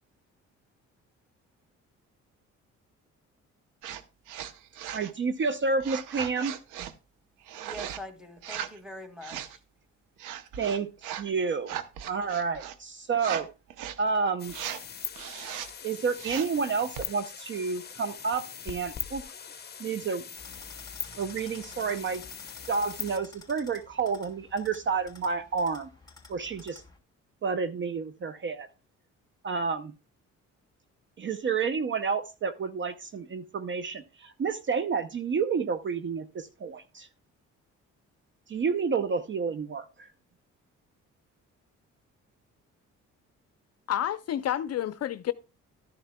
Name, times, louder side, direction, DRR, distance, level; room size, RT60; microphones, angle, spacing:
sound 1, 3.8-4.0 4.3-5.1 5.8-6.9 7.5-8.0 8.4-8.8 9.2-9.6 10.2-11.3 11.6-12.8 13.2-13.4 13.7-14.0 14.5-14.8 15.2-15.7 16.2-16.6 16.9-17.1, right 10 dB, 90° right, 0.8 m, -38 dB
voice 1, 4.9-6.5 10.6-11.8 12.1-13.5 14.0-14.6 15.8-19.2 19.8-20.2 21.2-22.2 22.7-25.9 26.3-26.8 27.4-28.7 29.4-29.9 31.2-37.1 38.5-40.1, right 5 dB, 40° right, 0.6 m, -30 dB
voice 2, 7.5-9.6, equal, ahead, 2.0 m, -43 dB
sound 2, 14.4-23.2, left 6 dB, 35° left, 0.9 m, -41 dB
sound 3, 20.4-27.0, left 3 dB, 15° left, 2.9 m, -51 dB
voice 3, 43.9-45.3, left 11 dB, 55° left, 0.5 m, -29 dB
12.5 x 10.0 x 2.2 m
cardioid pair, 90°, 30 cm